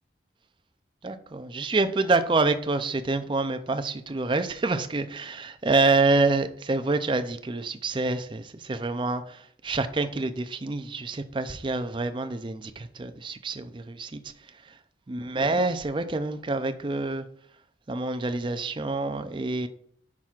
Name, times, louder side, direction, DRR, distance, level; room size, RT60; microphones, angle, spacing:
voice 1, 1.0-14.2 15.1-17.3 17.9-19.7, right 3 dB, 25° right, 10 dB, 0.4 m, -27 dB
9.9 x 6.0 x 2.4 m, 0.63 s
head